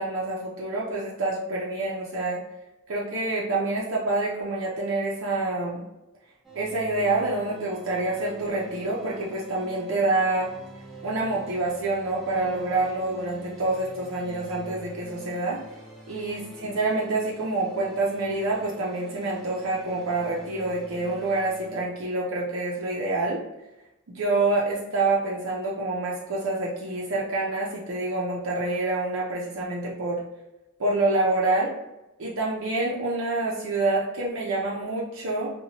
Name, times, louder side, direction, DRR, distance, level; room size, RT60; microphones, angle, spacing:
voice 1, 0.0-2.4 2.9-5.8 6.5-10.5 11.0-15.6 16.1-23.4 24.1-30.2 30.8-31.7 32.2-35.5, right 2 dB, 80° right, -4 dB, 0.5 m, -27 dB
sound 1, 6.4-21.8, right 1 dB, ahead, 0.5 m, -45 dB
2.8 x 2.2 x 2.7 m, 0.98 s
head